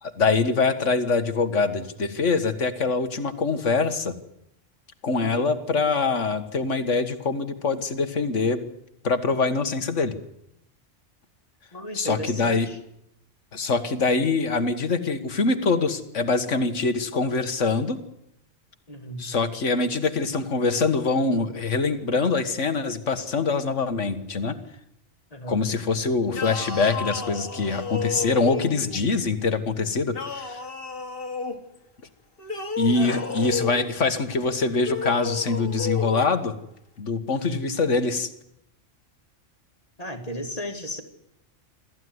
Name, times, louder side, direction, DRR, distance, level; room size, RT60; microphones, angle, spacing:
voice 1, 0.0-4.1 5.0-8.6 9.0-10.1 11.9-12.7 13.5-18.0 19.2-24.6 25.5-30.6 32.8-36.5 37.0-38.3, left 4 dB, 75° left, 10 dB, 1.9 m, -24 dB
voice 2, 5.2-5.6 11.7-12.8 18.9-19.4 25.3-25.7 32.9-33.6 37.3-37.8 40.0-41.0, equal, 30° left, 5 dB, 2.6 m, -35 dB
sound 1, 26.3-29.0 30.1-31.6 32.4-33.9 34.8-36.3, left 5 dB, 50° left, 2.2 m, -32 dB
26.0 x 14.5 x 9.6 m, 0.79 s
omnidirectional pair, 1.3 m